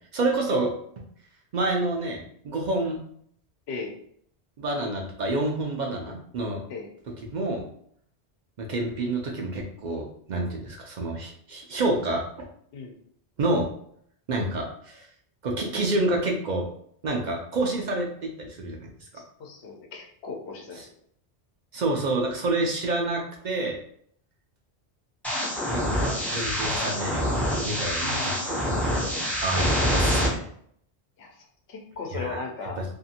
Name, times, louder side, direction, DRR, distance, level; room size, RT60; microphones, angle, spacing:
voice 1, 0.1-0.7 1.5-3.0 4.6-6.6 7.3-7.6 8.6-12.5 13.4-13.7 14.3-15.1 15.4-16.7 17.0-19.1 21.7-23.8 25.7-27.3 27.6-29.0 29.4-29.7 29.9-30.4 32.1-32.4 32.8-32.9, right 2 dB, 55° right, 1 dB, 0.5 m, -28 dB
voice 2, 19.1-20.9 28.0-28.4 31.2-32.8, left 4 dB, 80° left, 1 dB, 0.9 m, -37 dB
sound 1, 25.2-30.3, equal, ahead, 0.4 m, -26 dB
2.6 x 2.5 x 2.7 m, 0.65 s
omnidirectional pair, 1.1 m